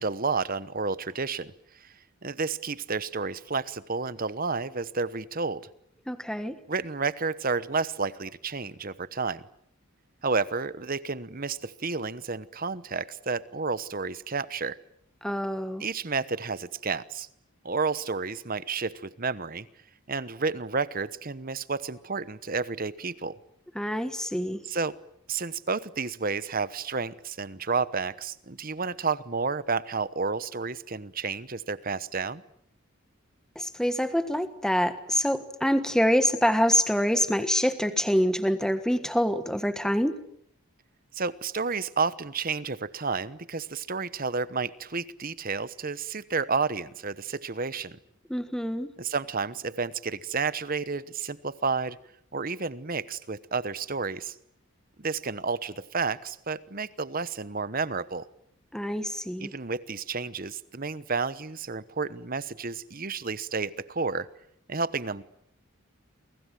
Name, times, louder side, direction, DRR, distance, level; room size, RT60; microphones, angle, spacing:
voice 1, 0.0-1.5 1.8-1.9 2.2-5.7 6.7-9.4 10.2-14.8 15.8-17.3 17.6-19.7 20.1-23.4 24.6-24.9 25.3-32.4 41.1-48.0 49.0-52.0 52.3-54.4 55.0-58.3 59.4-64.3 64.7-65.2, right 4 dB, 40° right, 16 dB, 1.0 m, -31 dB
voice 2, 6.1-6.5 15.2-15.8 23.7-24.6 33.5-40.2 48.3-48.9 58.7-59.5, equal, 5° left, 10 dB, 1.4 m, -26 dB
29.5 x 24.5 x 7.7 m, 0.68 s
head